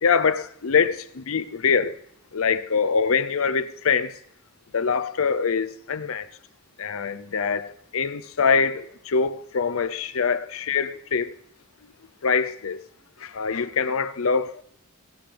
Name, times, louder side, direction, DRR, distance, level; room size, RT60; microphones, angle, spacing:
voice 1, 0.0-2.0 2.3-4.2 4.7-6.3 6.8-11.3 12.2-12.8 13.2-14.6, left 5 dB, 70° left, 0.6 m, -24 dB
17.5 x 12.5 x 3.4 m
head